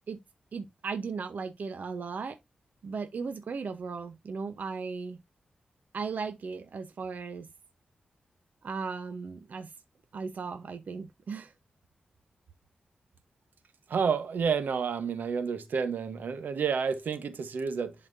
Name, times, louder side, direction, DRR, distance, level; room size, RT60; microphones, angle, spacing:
voice 1, 0.5-2.4 2.8-5.2 5.9-7.5 8.6-9.7 10.1-11.5, right 5 dB, 65° right, 0.8 m, -36 dB
voice 2, 13.9-17.9, right 6 dB, 85° right, 1.1 m, -30 dB
11.0 x 4.3 x 2.6 m
wide cardioid pair, 120°, 3 cm